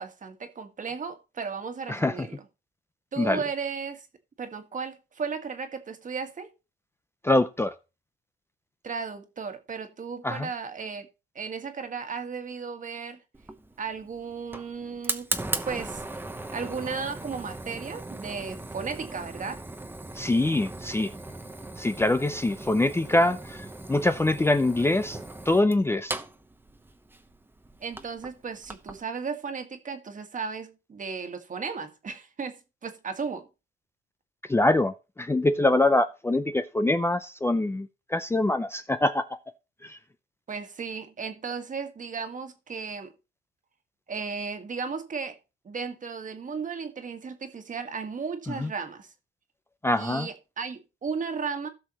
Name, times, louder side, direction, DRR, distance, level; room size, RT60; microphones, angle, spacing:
voice 1, 0.0-2.4 3.1-4.1 4.4-6.5 8.8-11.1 11.3-13.2 13.8-15.3 15.7-16.0 16.5-19.6 27.8-33.5 40.5-43.1 44.1-45.4 45.6-49.1 50.0-51.7, right 5 dB, 40° right, 1.6 m, -35 dB
voice 2, 7.2-7.7 10.2-10.5 20.1-21.1 21.8-25.2 25.5-26.2 34.5-39.4 39.8-40.0 48.6-48.7 49.8-50.3, left 2 dB, 10° left, 0.5 m, -24 dB
Fire, 13.3-29.0, right 2 dB, 10° right, 0.9 m, -38 dB
16.0 x 6.3 x 3.0 m
cardioid pair, 90°, 20 cm